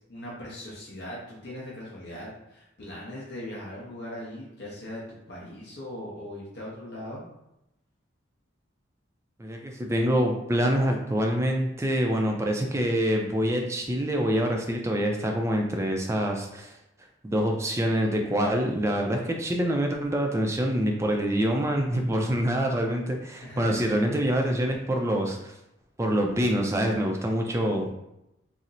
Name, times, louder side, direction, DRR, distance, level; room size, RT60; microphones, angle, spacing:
voice 1, 0.0-7.2 23.4-23.8, left 1 dB, 60° left, -5 dB, 0.7 m, -39 dB
voice 2, 9.4-16.7 17.2-25.5 26.0-27.9, equal, 15° right, 2 dB, 0.3 m, -26 dB
4.1 x 2.0 x 2.5 m, 0.87 s
head